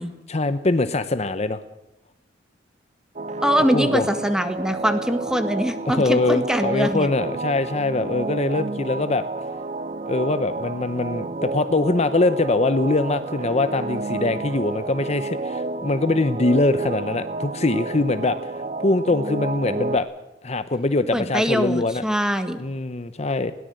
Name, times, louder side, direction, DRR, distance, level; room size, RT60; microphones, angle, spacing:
voice 1, 0.3-1.6 3.7-4.0 5.9-9.2 10.1-20.1 20.4-22.0 22.6-23.5, left 2 dB, 35° left, 11 dB, 0.8 m, -23 dB
sound 1, 3.2-20.0, right 3 dB, 35° right, 0.8 m, -30 dB
voice 2, 3.4-7.1 21.1-22.6, equal, 5° right, 8 dB, 1.7 m, -23 dB
21.0 x 17.5 x 7.8 m, 0.95 s
head